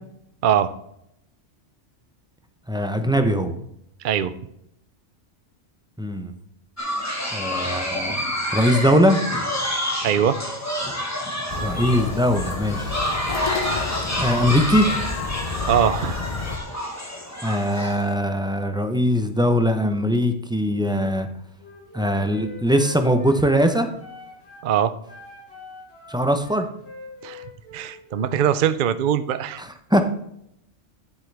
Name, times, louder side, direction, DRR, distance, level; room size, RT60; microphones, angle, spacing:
voice 1, 2.7-3.5 6.0-6.3 7.3-8.2 8.5-9.2 11.6-12.9 14.2-14.9 17.4-21.3 21.9-23.9 26.1-26.7 29.6-30.0, equal, 5° right, 6 dB, 0.6 m, -21 dB
voice 2, 4.0-4.3 10.0-10.4 15.7-16.3 24.6-24.9 27.2-27.4 27.7-29.6, right 9 dB, 55° right, 13 dB, 0.6 m, -21 dB
sound 1, 6.8-18.1, left 1 dB, 15° left, 1.4 m, -28 dB
sound 2, 11.5-16.6, left 4 dB, 40° left, 0.6 m, -30 dB
Wind instrument woodwind instrument, 21.6-24.7 25.0-28.4, left 2 dB, 55° left, 3.1 m, -43 dB
9.8 x 7.5 x 3.4 m, 0.76 s
omnidirectional pair, 1.2 m